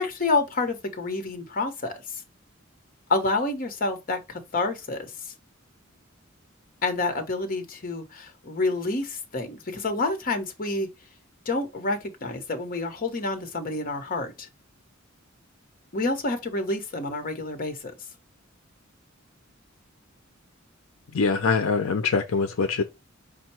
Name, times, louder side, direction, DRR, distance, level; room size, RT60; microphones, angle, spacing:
voice 1, 0.0-2.0 3.1-5.3 6.8-10.9 11.4-14.5 15.9-17.9, left 3 dB, 45° left, 0.9 m, -28 dB
voice 2, 21.1-22.8, left 4 dB, 75° left, 0.5 m, -23 dB
5.3 x 2.2 x 4.3 m
head